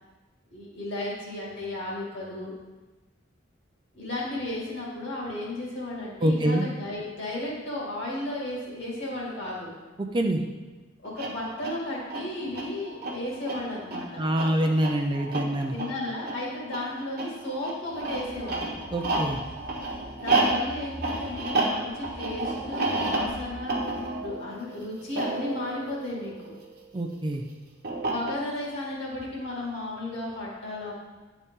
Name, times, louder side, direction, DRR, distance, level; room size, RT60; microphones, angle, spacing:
voice 1, 0.5-2.5 3.9-9.7 11.0-14.2 15.7-18.7 20.2-26.3 28.0-30.9, left 1 dB, 65° left, -5 dB, 2.3 m, -34 dB
voice 2, 6.2-6.6 10.0-10.4 14.2-15.8 18.9-19.4 26.9-27.4, right 1 dB, 25° right, 3 dB, 0.5 m, -25 dB
sound 1, 11.0-26.8 27.8-28.7, right 2 dB, 55° right, 1.1 m, -31 dB
sound 2, 17.9-24.1, equal, 80° left, 1.4 m, -45 dB
9.8 x 4.1 x 3.7 m, 1.2 s
head